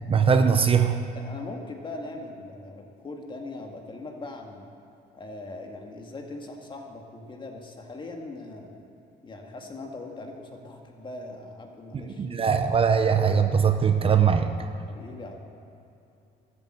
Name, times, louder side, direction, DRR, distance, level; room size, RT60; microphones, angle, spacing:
voice 1, 0.1-1.1 11.9-14.7, right 6 dB, 35° right, 7 dB, 0.7 m, -21 dB
voice 2, 1.1-4.7 5.1-8.8 9.2-12.3 14.9-15.4, left 2 dB, 30° left, 2 dB, 1.9 m, -40 dB
13.5 x 8.2 x 7.8 m, 2.7 s
cardioid pair, 110°, 17 cm